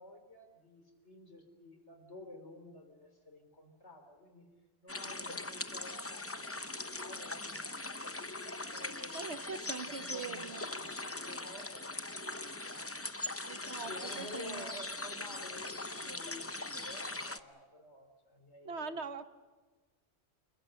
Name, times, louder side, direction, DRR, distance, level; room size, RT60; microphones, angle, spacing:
voice 1, 0.0-4.5 4.8-9.4 9.8-12.2 12.7-18.9, left 1 dB, 85° left, 6 dB, 4.1 m, -52 dB
sound 1, 4.9-17.4, left 2 dB, 15° left, 0.6 m, -41 dB
voice 2, 9.1-10.6 13.5-13.9 14.2-14.7 18.6-19.2, right 5 dB, 75° right, 9 dB, 1.5 m, -42 dB
29.5 x 21.5 x 6.6 m, 1.3 s
omnidirectional pair, 1.1 m